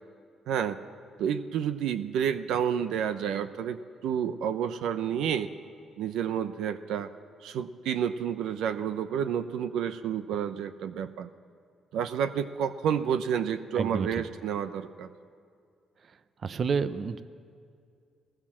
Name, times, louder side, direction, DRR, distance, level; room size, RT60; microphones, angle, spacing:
voice 1, 0.5-0.8 1.2-5.5 6.0-7.1 7.4-11.3 11.9-15.1, right 8 dB, 85° right, 11 dB, 0.7 m, -30 dB
voice 2, 13.8-14.1 16.4-17.2, right 5 dB, 50° right, 13 dB, 0.7 m, -29 dB
19.0 x 18.5 x 7.5 m, 2.3 s
cardioid pair, 90°, 0 cm